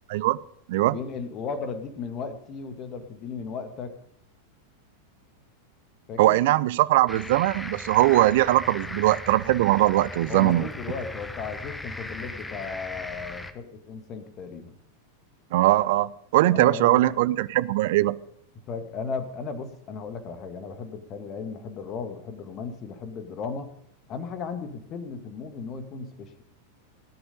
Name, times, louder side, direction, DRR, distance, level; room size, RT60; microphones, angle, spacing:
voice 1, 0.8-4.0 6.1-6.4 10.3-14.7 16.5-17.0 18.7-23.7 24.1-26.4, left 5 dB, 35° left, 2.0 m, -35 dB
voice 2, 6.2-10.7 15.5-18.2, right 16 dB, 50° right, 0.6 m, -21 dB
frogs and motor bike, 7.1-13.5, left 2 dB, 5° left, 1.2 m, -38 dB
18.5 x 10.5 x 5.3 m
figure-of-eight pair, 90°, 0 cm